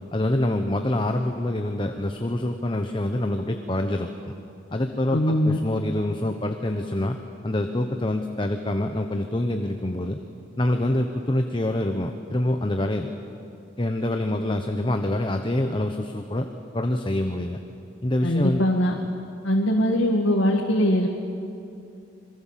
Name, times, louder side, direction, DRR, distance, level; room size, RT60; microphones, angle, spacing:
voice 1, 0.1-4.1 4.7-7.2 7.4-10.2 10.6-13.1 13.8-16.5 16.7-17.6 18.0-18.6, left 1 dB, 25° left, 5 dB, 1.0 m, -26 dB
voice 2, 5.1-5.6 18.2-19.0 19.4-21.1, equal, 90° left, 0 dB, 2.1 m, -21 dB
26.5 x 22.0 x 7.5 m, 2.6 s
head